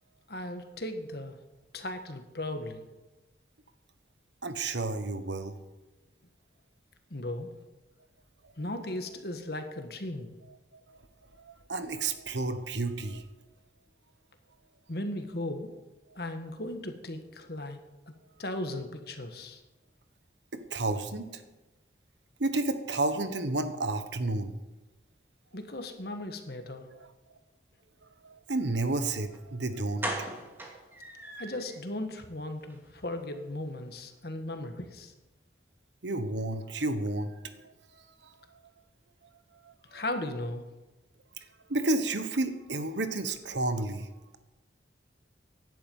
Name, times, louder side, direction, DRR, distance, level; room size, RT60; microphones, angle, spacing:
voice 1, 0.3-1.4 1.7-2.9 7.1-7.6 8.6-10.3 14.9-15.7 16.1-17.8 18.4-19.6 25.5-26.9 31.4-35.1 39.9-40.6, left 1 dB, 55° left, 6 dB, 1.6 m, -37 dB
voice 2, 4.4-5.6 10.9-11.0 11.4-13.2 20.7-21.3 22.4-24.5 27.0-27.1 28.2-30.3 36.0-37.7 41.7-44.1, right 2 dB, 80° right, 9 dB, 1.3 m, -31 dB
sound 1, 29.3-29.4 30.0-31.8 32.1-32.2 32.6-32.8 33.0-33.1, right 1 dB, 10° right, 2.4 m, -38 dB
16.5 x 11.0 x 5.6 m, 1.1 s
head